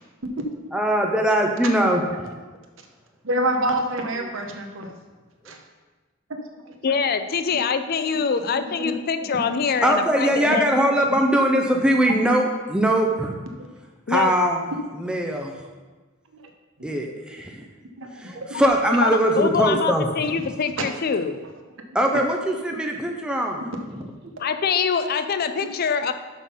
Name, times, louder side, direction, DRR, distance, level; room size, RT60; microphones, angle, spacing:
voice 1, 0.7-2.0 9.8-13.4 14.1-14.6 15.0-15.5 16.8-17.6 18.2-20.1 21.9-23.6, right 1 dB, 5° right, 1 dB, 0.6 m, -21 dB
voice 2, 3.2-4.9 5.4-5.6 6.5-7.0 8.5-8.9 9.2-9.4 12.1-12.2 13.6-13.7 14.7-14.8 16.3-16.5 18.0-18.6 20.8-20.9 21.9-22.0 24.0-24.1, right 1 dB, 65° right, 3 dB, 1.0 m, -28 dB
voice 3, 6.8-10.7 14.1-14.3 19.0-19.1 19.4-21.4 24.4-26.1, left 6 dB, 50° left, 10 dB, 0.4 m, -24 dB
6.2 x 5.6 x 5.4 m, 1.3 s
head